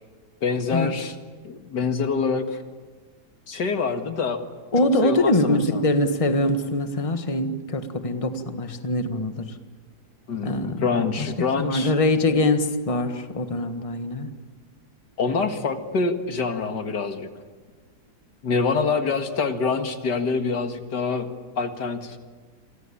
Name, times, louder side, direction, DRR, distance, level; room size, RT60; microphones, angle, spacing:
voice 1, 0.4-1.1 1.4-2.6 3.5-4.4 5.0-5.9 10.3-11.9 15.2-17.3 18.4-21.3 21.6-22.2, left 4 dB, 85° left, 7 dB, 2.4 m, -25 dB
voice 2, 4.7-9.5 10.4-10.9 11.2-11.3 11.6-14.3, left 2 dB, 20° left, 8 dB, 1.5 m, -23 dB
28.0 x 24.5 x 8.6 m, 1.4 s
omnidirectional pair, 1.8 m